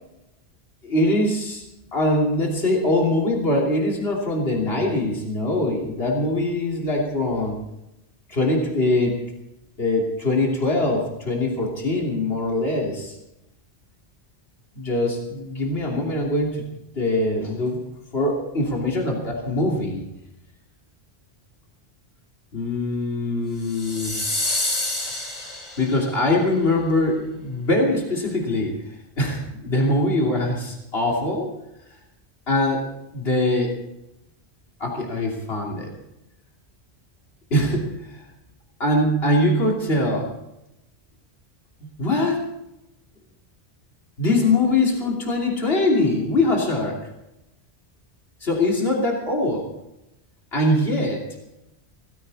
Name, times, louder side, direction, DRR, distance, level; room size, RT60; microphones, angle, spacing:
voice 1, 0.8-1.6 1.9-7.6 8.3-9.2 9.8-13.1 14.7-16.6 16.9-17.8 18.1-20.0 22.5-24.2 25.8-31.5 32.5-32.9 33.1-33.7 34.8-35.9 37.5-38.2 38.8-40.3 41.8-42.5 44.2-47.0 48.4-49.7 50.5-51.2, left 1 dB, 65° left, -1 dB, 3.3 m, -22 dB
sound 1, 23.6-26.1, left 2 dB, 80° left, 3.8 m, -27 dB
17.5 x 15.5 x 4.2 m, 0.88 s
omnidirectional pair, 1.1 m